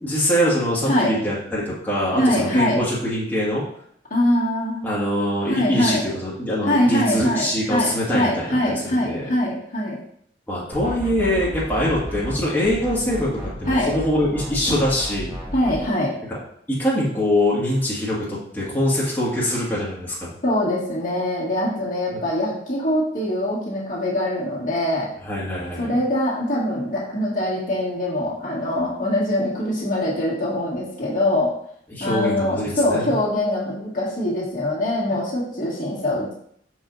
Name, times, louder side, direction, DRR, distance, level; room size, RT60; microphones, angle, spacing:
voice 1, 0.0-3.6 4.8-9.2 10.5-15.4 16.3-16.4 16.7-20.4 22.1-22.2 25.2-25.9 31.9-33.2, left 1 dB, 10° left, -8 dB, 1.8 m, -23 dB
voice 2, 2.2-2.8 4.1-4.9 5.5-6.0 6.7-10.0 13.7-13.9 15.5-16.1 20.4-25.1 25.8-31.5 32.0-36.3, left 1 dB, 45° left, -6 dB, 2.0 m, -23 dB
sound 1, 10.7-12.4 12.6-15.8, equal, 20° right, 1.6 m, -33 dB
6.4 x 4.9 x 4.0 m, 0.67 s
head